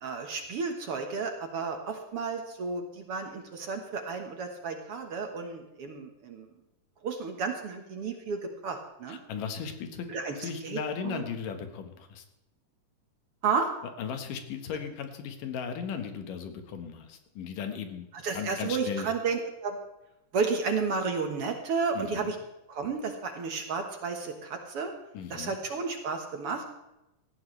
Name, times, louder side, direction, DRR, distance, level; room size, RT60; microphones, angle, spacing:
voice 1, 0.0-6.5 7.0-9.2 10.1-11.2 13.4-13.7 18.1-19.8 20.3-22.4 22.7-24.9 25.3-26.8, right 5 dB, 55° right, 4 dB, 2.0 m, -32 dB
voice 2, 9.1-12.2 14.0-18.1 18.3-19.1 21.9-22.3 25.1-25.6, left 6 dB, 85° left, 7 dB, 3.1 m, -36 dB
18.0 x 14.0 x 3.3 m, 0.92 s
omnidirectional pair, 3.7 m